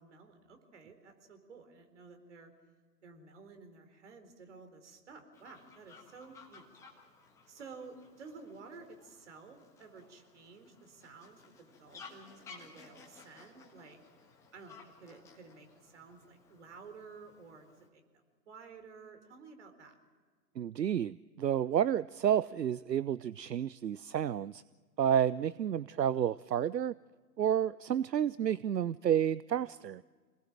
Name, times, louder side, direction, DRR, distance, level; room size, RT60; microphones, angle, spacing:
voice 1, 0.0-2.5 3.0-6.6 7.5-14.0 14.5-18.0 18.5-20.0, right 4 dB, 45° right, 7 dB, 4.1 m, -53 dB
Fowl, 5.3-17.9, left 4 dB, 5° left, 1.6 m, -57 dB
voice 2, 20.6-24.6 25.0-26.9 27.4-30.0, right 9 dB, 75° right, 19 dB, 0.6 m, -30 dB
27.5 x 19.5 x 7.5 m, 1.5 s
figure-of-eight pair, 145°, 50 cm